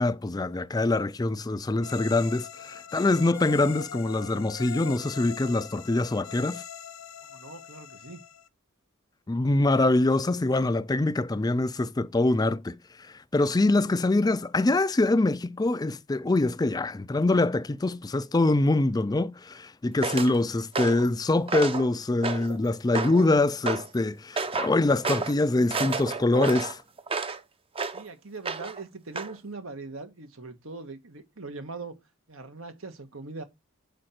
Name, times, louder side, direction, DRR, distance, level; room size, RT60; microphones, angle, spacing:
voice 1, 0.0-6.6 9.3-26.8, left 2 dB, 20° left, 0.4 m, -24 dB
sound 1, 1.8-8.5, left 8 dB, 75° left, 0.9 m, -42 dB
voice 2, 7.2-8.2 27.9-32.0 32.3-33.4, right 3 dB, 75° right, 1.5 m, -41 dB
sound 2, 20.0-20.3 20.7-21.1 21.5-21.9 22.2-22.6 22.9-23.3 23.7-23.9 24.4-24.7 25.0-25.3 25.7-27.4 27.7-28.0 28.4-28.8 29.2-29.3, right 4 dB, 25° right, 0.7 m, -30 dB
7.7 x 5.1 x 4.4 m
head